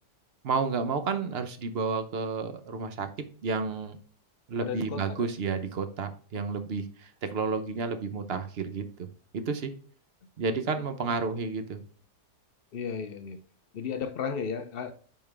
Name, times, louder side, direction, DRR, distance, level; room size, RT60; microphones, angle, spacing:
voice 1, 0.4-3.1 3.4-4.0 4.5-9.1 9.3-9.7 10.4-11.8, right 4 dB, 50° right, 9 dB, 0.7 m, -31 dB
voice 2, 4.6-5.3 11.0-11.1 12.7-13.4 13.7-14.9, left 6 dB, 85° left, 8 dB, 0.5 m, -34 dB
8.6 x 4.4 x 3.4 m, 0.42 s
omnidirectional pair, 1.8 m